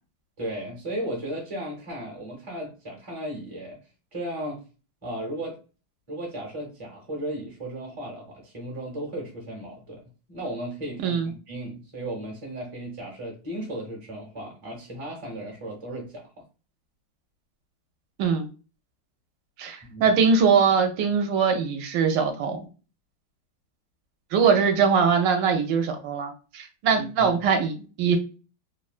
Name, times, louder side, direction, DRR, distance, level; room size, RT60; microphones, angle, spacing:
voice 1, 0.4-3.8 4.1-4.6 5.0-5.6 6.1-10.0 10.3-16.3 19.8-20.1 26.9-27.3, right 1 dB, 30° right, -2 dB, 0.6 m, -35 dB
voice 2, 19.6-22.7 24.3-28.2, right 6 dB, 75° right, 5 dB, 1.2 m, -22 dB
3.1 x 2.2 x 2.4 m, 0.34 s
omnidirectional pair, 2.1 m